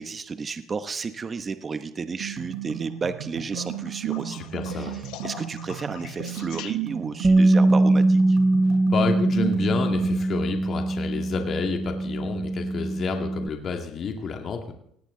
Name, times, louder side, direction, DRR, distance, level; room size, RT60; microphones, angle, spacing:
voice 1, 0.0-4.4 4.7-4.9 5.2-8.4, right 5 dB, 30° right, 10 dB, 1.1 m, -32 dB
sound 1, 2.2-10.2, right 11 dB, 80° right, 4.8 m, -34 dB
sound 2, 3.5-7.2 9.4-9.9 11.5-11.6, left 13 dB, 75° left, 0.9 m, -43 dB
voice 2, 4.3-5.0 8.6-14.7, left 5 dB, 45° left, 3 dB, 2.2 m, -30 dB
Bass guitar, 7.2-13.5, right 2 dB, 10° right, 0.5 m, -22 dB
18.5 x 17.0 x 3.9 m, 0.69 s
cardioid pair, 105°, 0 cm